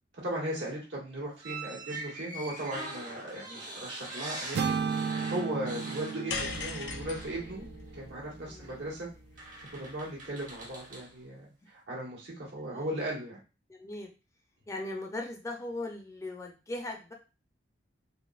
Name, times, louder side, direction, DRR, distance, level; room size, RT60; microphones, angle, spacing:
voice 1, 0.2-7.6 7.9-9.1 9.7-13.4, right 1 dB, 85° right, -4 dB, 1.5 m, -37 dB
sound 1, 1.4-6.9 7.2-7.4 8.6-8.8 9.4-11.1, right 2 dB, 45° right, 0.9 m, -43 dB
sound 2, 4.5-8.6, right 5 dB, 65° right, 0.4 m, -35 dB
sound 3, 6.3-10.7, left 4 dB, 85° left, 0.6 m, -41 dB
voice 2, 8.5-8.9 12.5-12.9 13.7-14.1 14.7-17.1, left 2 dB, 15° left, 2 dB, 0.5 m, -39 dB
4.0 x 2.1 x 2.3 m, 0.31 s
head